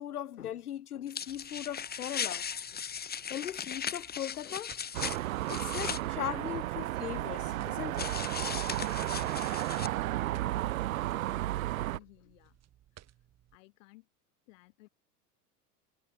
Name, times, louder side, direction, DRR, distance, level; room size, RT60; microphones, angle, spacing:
voice 1, 0.0-2.8 3.3-4.7 5.5-8.1 8.5-8.6 9.1-9.4, left 11 dB, 70° left, 1.2 m, -39 dB
sound 1, 1.1-6.0 8.0-9.9, left 7 dB, 20° left, 2.5 m, -38 dB
sound 2, 1.3-13.6, right 12 dB, 35° right, 7.9 m, -62 dB
sound 3, 4.9-12.0, right 15 dB, 60° right, 0.8 m, -33 dB
voice 2, 11.9-12.6 13.5-14.1 14.5-14.9, left 22 dB, 55° left, 7.9 m, -58 dB
figure-of-eight pair, 85°, 47 cm